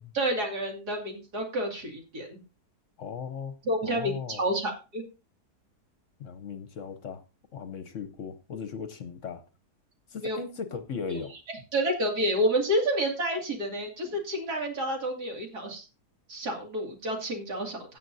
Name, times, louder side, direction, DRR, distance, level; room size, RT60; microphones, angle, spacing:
voice 1, 0.1-2.4 3.7-5.0 10.2-10.4 11.1-11.2 11.7-15.9 16.3-18.0, right 1 dB, 75° right, 3.0 m, -29 dB
voice 2, 3.0-3.5 3.8-4.5 6.2-7.2 7.5-9.4 10.1-11.3, left 6 dB, 60° left, 1.0 m, -37 dB
16.5 x 7.6 x 2.7 m
omnidirectional pair, 1.7 m